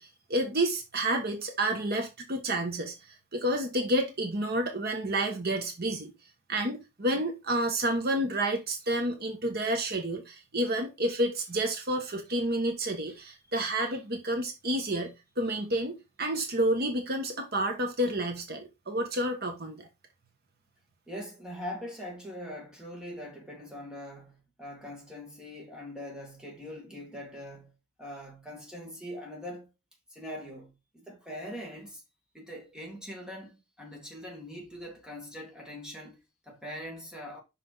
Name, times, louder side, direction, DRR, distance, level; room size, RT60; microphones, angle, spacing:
voice 1, 0.0-6.1 6.5-19.9, right 1 dB, 45° right, 1.3 m, -30 dB
voice 2, 21.1-29.7 30.1-32.0 32.3-37.4, equal, 5° right, 2.0 m, -42 dB
5.9 x 5.9 x 3.9 m
head